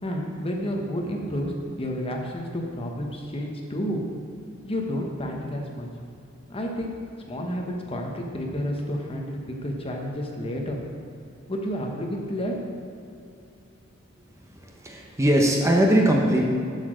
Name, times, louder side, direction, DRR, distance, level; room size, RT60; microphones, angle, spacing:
voice 1, 0.0-1.5 1.8-4.0 4.6-5.9 6.5-6.9 7.3-10.8 11.5-12.5, equal, 25° left, 1 dB, 1.1 m, -30 dB
voice 2, 14.6-16.4, right 1 dB, 15° right, 0 dB, 0.9 m, -20 dB
8.0 x 7.0 x 6.3 m, 2.6 s
head